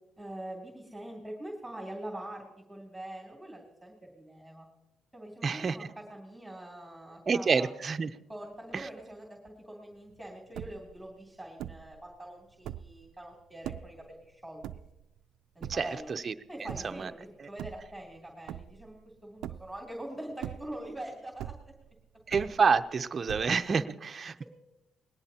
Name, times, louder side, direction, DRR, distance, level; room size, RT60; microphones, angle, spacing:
voice 1, 0.2-4.7 5.1-7.7 8.3-14.6 15.5-16.1 16.5-21.5 23.2-23.4, right 1 dB, 5° right, -1 dB, 2.9 m, -44 dB
voice 2, 5.4-5.8 7.3-8.1 8.7-8.9 15.7-16.3 16.9-17.1 17.4-17.5 22.3-24.4, right 5 dB, 40° right, 8 dB, 0.6 m, -28 dB
sound 1, 10.1-10.2 10.4-11.0 11.6-12.0 12.5-13.0 13.6-14.0 14.6-15.2 15.6-16.1 16.7-17.1 17.5-18.2 18.5-19.0 19.4-19.9 20.3-21.0 21.4-21.9 22.3-22.9 23.3-23.8, right 11 dB, 85° right, 0.4 m, -41 dB
20.0 x 17.5 x 2.9 m, 0.97 s
cardioid pair, 90°, 0 cm